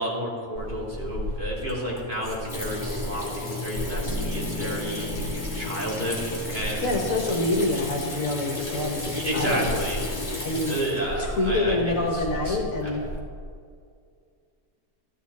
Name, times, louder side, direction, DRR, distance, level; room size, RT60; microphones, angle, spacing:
voice 1, 0.0-5.1 5.5-6.9 9.0-10.0 10.7-13.0, equal, 30° right, -6 dB, 3.4 m, -31 dB
Water tap faucet / Sink (filling or washing), 0.6-13.2, left 1 dB, 30° left, 2.6 m, -33 dB
Bass guitar, 4.0-7.7, left 2 dB, 80° right, 4.9 m, -39 dB
voice 2, 6.8-9.8 10.4-10.7 11.2-13.0, left 2 dB, 60° left, 2 dB, 1.6 m, -26 dB
14.0 x 13.0 x 4.2 m, 2.2 s
omnidirectional pair, 1.6 m